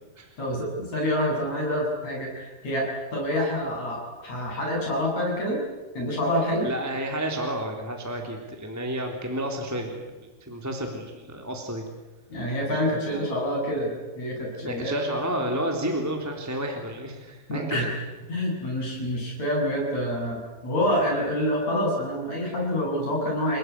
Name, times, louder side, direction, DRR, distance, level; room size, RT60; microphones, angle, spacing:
voice 1, 0.4-5.6 6.0-6.7 12.3-15.1 17.5-17.9 18.3-23.6, equal, 45° left, -1 dB, 9.2 m, -27 dB
voice 2, 6.6-10.1 10.4-11.8 13.1-13.3 14.6-17.9, right 1 dB, 5° right, 2 dB, 3.0 m, -31 dB
30.0 x 19.0 x 9.6 m, 1.2 s
omnidirectional pair, 4.4 m